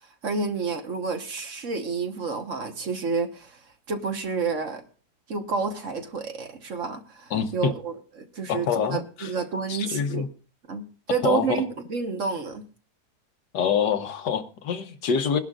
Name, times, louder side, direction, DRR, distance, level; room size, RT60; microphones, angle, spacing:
voice 1, 0.2-3.6 3.9-4.8 5.3-10.3 10.7-12.6, right 5 dB, 50° right, 1.5 m, -29 dB
voice 2, 7.3-7.7 8.5-9.3 9.7-10.3 11.2-11.6 13.5-15.4, left 7 dB, 90° left, 1.6 m, -26 dB
21.5 x 11.5 x 2.4 m
omnidirectional pair, 1.8 m